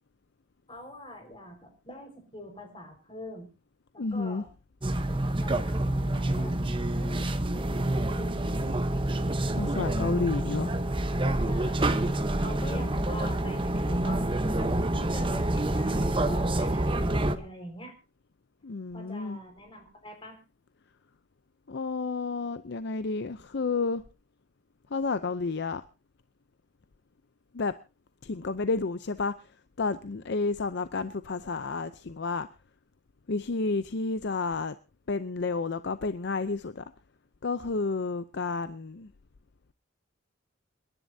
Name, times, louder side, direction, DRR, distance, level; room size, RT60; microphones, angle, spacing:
voice 1, 0.7-3.5 3.9-4.5 5.4-6.6 6.9-8.8 11.4-17.9 18.9-20.4, equal, 25° left, 4 dB, 4.9 m, -44 dB
voice 2, 4.0-4.4 9.6-10.7 18.6-19.4 21.7-24.0 24.9-25.8 27.5-27.7 28.2-29.3 29.8-32.5 33.3-34.7 35.1-36.8 37.4-39.1, left 3 dB, 55° left, 12 dB, 0.6 m, -30 dB
sound 1, 4.8-17.4, right 1 dB, 25° right, 1.0 m, -27 dB
28.5 x 11.0 x 2.7 m, 0.31 s
head